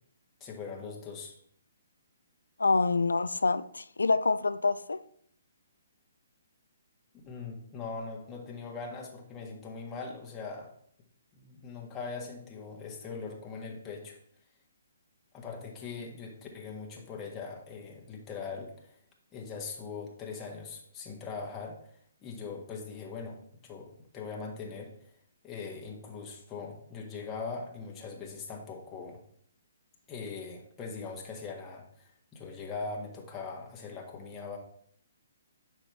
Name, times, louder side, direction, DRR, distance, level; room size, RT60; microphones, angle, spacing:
voice 1, 0.4-1.3 7.2-10.7 11.3-14.2 15.3-19.0 19.3-25.1 25.4-29.2 30.1-34.6, left 4 dB, 15° left, 1.6 m, -41 dB
voice 2, 2.6-5.0, left 3 dB, 70° left, 0.4 m, -26 dB
8.9 x 6.0 x 3.5 m
figure-of-eight pair, 130°, 0 cm